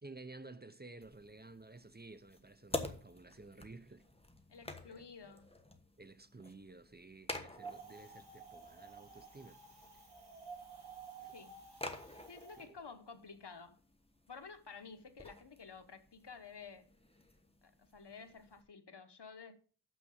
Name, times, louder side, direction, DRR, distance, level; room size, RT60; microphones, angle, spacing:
voice 1, 0.0-4.1 4.9-5.0 6.0-9.6 11.2-11.3 12.6-12.8, right 3 dB, 25° right, 0.6 m, -53 dB
sound 1, 1.0-18.6, left 1 dB, 15° left, 1.3 m, -50 dB
voice 2, 4.5-5.5 11.2-11.6 12.3-13.8 14.3-16.9 17.6-19.5, left 5 dB, 75° left, 1.1 m, -52 dB
Wind, 7.6-12.7, right 5 dB, 70° right, 2.8 m, -52 dB
6.7 x 6.1 x 6.4 m
wide cardioid pair, 50°, 41 cm